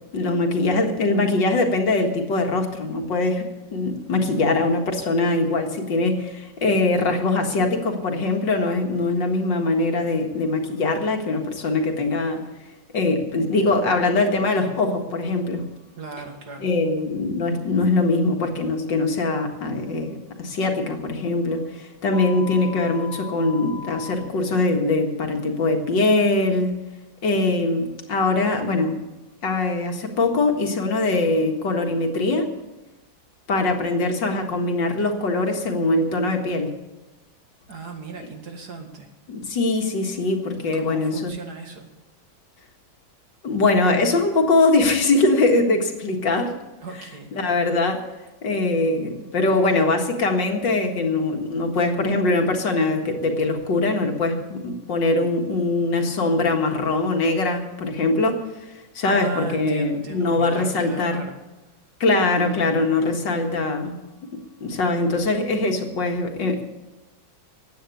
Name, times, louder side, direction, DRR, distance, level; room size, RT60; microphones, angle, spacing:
voice 1, 0.1-3.5 3.7-12.4 12.9-15.6 16.6-26.7 27.2-29.0 29.4-32.5 33.5-36.7 39.3-41.3 43.4-46.5 47.3-48.0 48.4-61.2 62.0-64.0 64.6-66.6, left 2 dB, 70° left, 3 dB, 2.4 m, -22 dB
voice 2, 16.0-16.7 37.7-39.1 40.6-41.9 46.8-47.3 59.0-61.4, right 4 dB, 55° right, 3 dB, 2.5 m, -37 dB
sound 1, 22.1-24.1, left 4 dB, 10° right, 1.3 m, -38 dB
15.0 x 9.4 x 8.5 m, 1.0 s
omnidirectional pair, 2.1 m